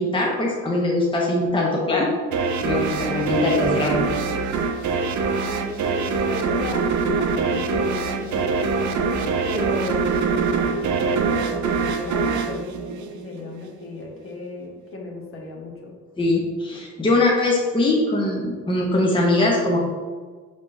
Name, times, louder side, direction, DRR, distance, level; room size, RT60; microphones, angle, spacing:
voice 1, 0.0-2.1 2.6-4.0 16.2-19.8, left 2 dB, 15° left, -2 dB, 0.8 m, -21 dB
sound 1, 2.3-13.6, right 5 dB, 75° right, 0.5 m, -24 dB
voice 2, 5.2-15.9, left 1 dB, 45° left, -1 dB, 1.1 m, -34 dB
5.6 x 3.5 x 2.6 m, 1.5 s
cardioid pair, 90°, 30 cm